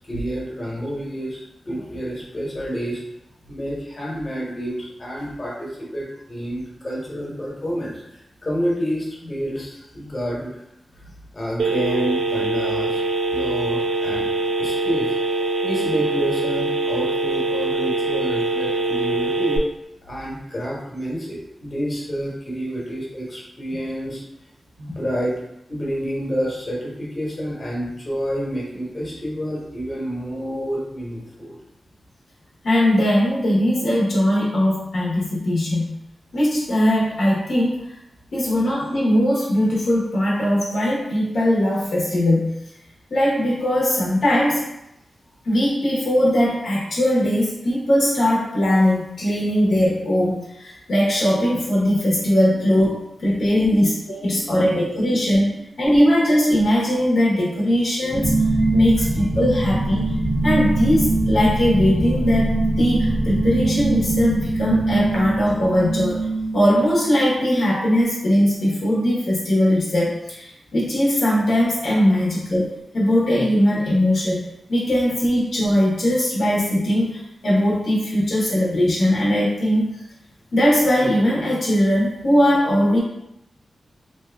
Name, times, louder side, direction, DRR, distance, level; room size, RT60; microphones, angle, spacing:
voice 1, 0.1-3.0 3.5-10.5 11.3-13.0 13.3-14.3 14.6-15.1 15.6-19.6 20.1-24.2 24.8-25.3 25.7-31.6 53.3-53.7 54.2-55.3 58.6-58.7 59.0-59.1, equal, 35° left, -5 dB, 1.1 m, -29 dB
Telephone, 11.6-19.6, right 3 dB, 85° right, 0.4 m, -23 dB
voice 2, 32.6-35.8 36.3-37.8 38.3-42.5 43.1-44.7 45.4-55.4 55.8-58.3 58.7-60.0 60.4-66.3 66.5-74.4 74.7-79.9 80.5-83.0, equal, 70° left, -5 dB, 0.9 m, -20 dB
sound 1, 58.1-67.6, right 2 dB, 60° right, 0.9 m, -22 dB
2.9 x 2.3 x 3.3 m, 0.83 s
wide cardioid pair, 90°, 0 cm